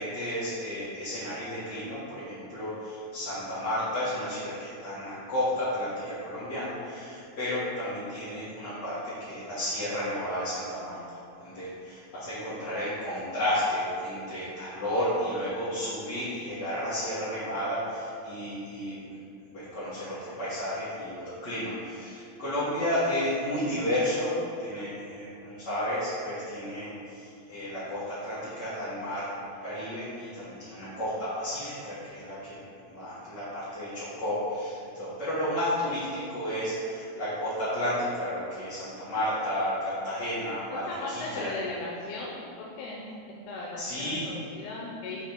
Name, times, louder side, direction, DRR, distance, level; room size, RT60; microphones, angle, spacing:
voice 1, 0.0-11.0 11.4-19.1 19.5-29.3 29.6-40.8 41.1-41.5 43.8-44.3, left 1 dB, 40° left, -14 dB, 1.8 m, -32 dB
voice 2, 40.7-45.2, left 2 dB, 90° left, -4 dB, 2.2 m, -37 dB
5.1 x 4.2 x 5.9 m, 2.5 s
omnidirectional pair, 3.4 m